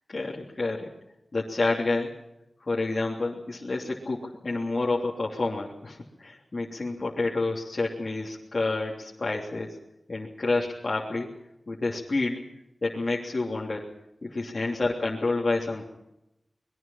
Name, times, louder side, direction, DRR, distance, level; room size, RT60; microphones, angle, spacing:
voice 1, 0.1-0.9 1.3-2.1 2.7-9.8 10.1-11.3 11.7-12.4 12.8-13.9 14.2-15.8, left 3 dB, 50° left, -4 dB, 3.4 m, -29 dB
25.0 x 21.5 x 5.9 m, 0.87 s
wide cardioid pair, 85°, 0 cm